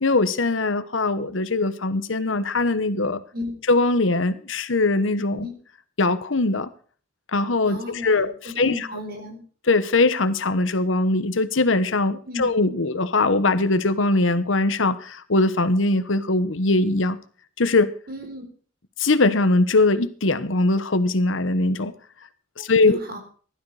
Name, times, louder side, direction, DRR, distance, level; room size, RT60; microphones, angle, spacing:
voice 1, 0.0-3.2 3.7-5.5 6.0-6.7 7.3-8.9 9.7-17.2 17.6-17.9 19.0-21.9 22.6-23.0, left 2 dB, 85° left, 13 dB, 1.2 m, -21 dB
voice 2, 7.7-9.4 12.3-12.5 18.1-18.4 22.9-23.2, left 2 dB, 50° right, 5 dB, 4.3 m, -34 dB
16.0 x 12.5 x 4.9 m, 0.43 s
head